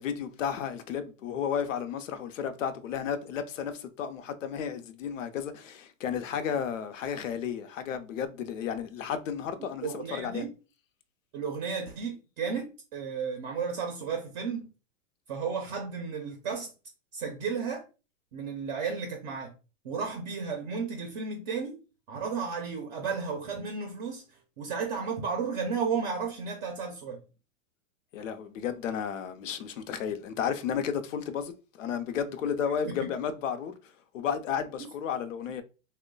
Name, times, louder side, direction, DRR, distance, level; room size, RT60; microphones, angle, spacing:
voice 1, 0.0-10.4 28.1-35.6, left 8 dB, 85° left, 0.7 m, -33 dB
voice 2, 9.8-10.5 11.3-14.7 15.3-16.7 17.1-17.8 18.3-19.5 19.8-21.8 22.1-27.2 32.8-32.9, right 5 dB, 35° right, 0.6 m, -33 dB
3.0 x 2.1 x 3.8 m
supercardioid pair, 155°, 37 cm